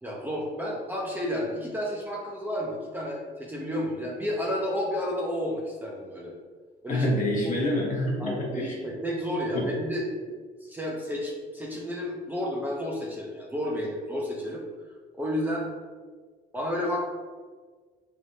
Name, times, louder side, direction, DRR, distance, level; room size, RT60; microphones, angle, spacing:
voice 1, 0.0-6.3 6.8-7.1 8.2-10.2 10.6-14.6 15.1-15.7 16.5-17.0, equal, 10° right, -3 dB, 0.5 m, -31 dB
voice 2, 6.9-8.7 9.5-9.7, left 1 dB, 50° left, -3 dB, 1.0 m, -27 dB
3.4 x 2.7 x 2.7 m, 1.5 s
cardioid pair, 110°, 17 cm